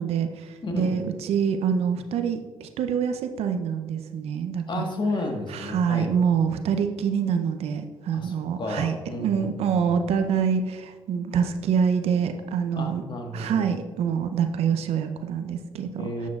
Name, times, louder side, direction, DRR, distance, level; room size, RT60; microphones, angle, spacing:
voice 1, 0.0-4.8 5.5-13.0 13.3-16.1, right 7 dB, 70° right, 8 dB, 0.6 m, -26 dB
voice 2, 0.6-1.0 4.7-6.1 8.1-9.9 12.8-13.7 16.0-16.3, left 2 dB, 45° left, 3 dB, 1.5 m, -32 dB
10.5 x 7.2 x 2.4 m, 1.4 s
supercardioid pair, 55°, 11 cm